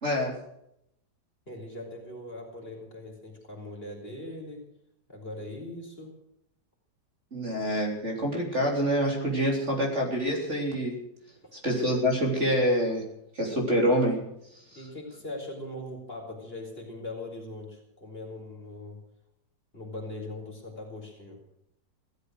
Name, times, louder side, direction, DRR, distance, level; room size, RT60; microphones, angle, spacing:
voice 1, 0.0-0.4 7.3-10.9 11.6-13.0 13.3-14.2, equal, 40° right, 0 dB, 4.0 m, -26 dB
voice 2, 1.5-4.6 5.1-6.1 11.4-11.5 14.7-19.0 19.7-21.4, left 1 dB, 30° left, 0 dB, 4.7 m, -40 dB
16.5 x 13.5 x 6.5 m, 0.78 s
omnidirectional pair, 1.9 m